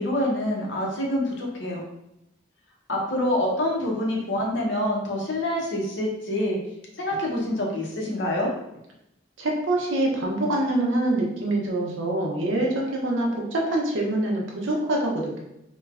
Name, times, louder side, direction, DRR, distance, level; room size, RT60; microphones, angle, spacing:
voice 1, 0.0-1.8 2.9-6.6 7.0-8.5, left 1 dB, 75° left, -2 dB, 0.7 m, -26 dB
voice 2, 9.4-15.4, right 1 dB, 85° right, -1 dB, 0.7 m, -25 dB
3.1 x 2.1 x 2.3 m, 0.83 s
head